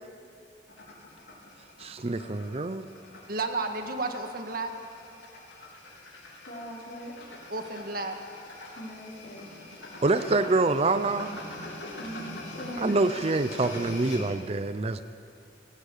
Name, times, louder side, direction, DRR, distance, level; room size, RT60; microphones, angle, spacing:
sound 1, 0.7-14.3, left 2 dB, 75° left, 4.2 m, -44 dB
voice 1, 1.8-2.8 10.0-11.3 12.8-15.0, right 3 dB, 35° right, 11 dB, 0.6 m, -26 dB
voice 2, 3.3-4.7 7.5-8.2, right 3 dB, 55° right, 5 dB, 1.7 m, -32 dB
voice 3, 6.5-7.2 8.8-9.5 12.0-13.0, equal, 50° left, -4 dB, 5.1 m, -40 dB
19.5 x 18.0 x 8.4 m, 2.7 s
head